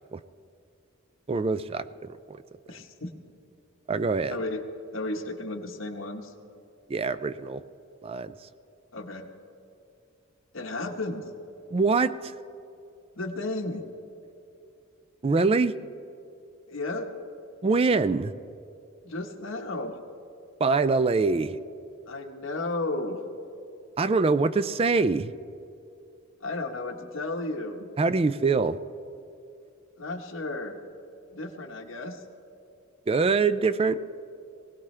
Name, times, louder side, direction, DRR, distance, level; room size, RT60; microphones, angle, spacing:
voice 1, 1.3-2.4 3.9-4.4 6.9-7.6 8.0-8.5 11.7-12.3 15.2-15.7 17.6-18.3 20.6-21.6 24.0-25.3 28.0-28.8 33.1-34.0, right 4 dB, 30° right, 14 dB, 0.4 m, -24 dB
voice 2, 2.7-3.1 4.3-4.6 4.9-6.3 8.9-9.3 10.5-11.3 13.1-13.9 16.7-17.1 19.0-20.0 22.1-23.2 26.4-27.9 30.0-30.8 31.3-32.2, left 2 dB, 90° left, 4 dB, 1.3 m, -33 dB
20.5 x 18.0 x 3.3 m, 2.7 s
head